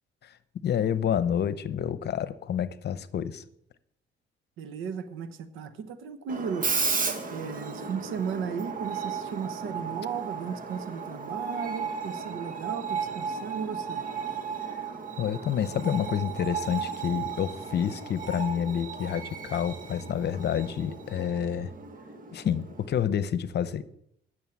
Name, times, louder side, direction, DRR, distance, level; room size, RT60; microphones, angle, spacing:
voice 1, 0.6-3.4 14.7-14.8 15.2-21.7 22.3-23.8, left 8 dB, 55° left, 15 dB, 0.8 m, -29 dB
voice 2, 4.6-6.8 7.3-14.1, right 6 dB, 90° right, 11 dB, 1.1 m, -35 dB
Screech, 6.3-22.9, right 5 dB, 45° right, 1.6 m, -35 dB
11.0 x 6.5 x 8.5 m, 0.74 s
cardioid pair, 90°, 20 cm